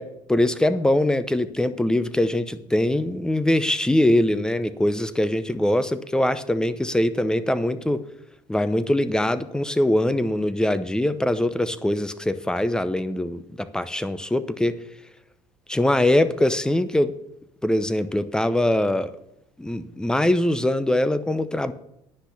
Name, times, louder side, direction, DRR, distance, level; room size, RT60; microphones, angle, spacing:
voice 1, 0.3-8.0 8.5-14.8 15.7-17.1 17.6-19.1 19.6-21.7, left 1 dB, 5° left, 14 dB, 0.7 m, -22 dB
10.5 x 6.0 x 7.0 m, 0.83 s
supercardioid pair, 95°, 12 cm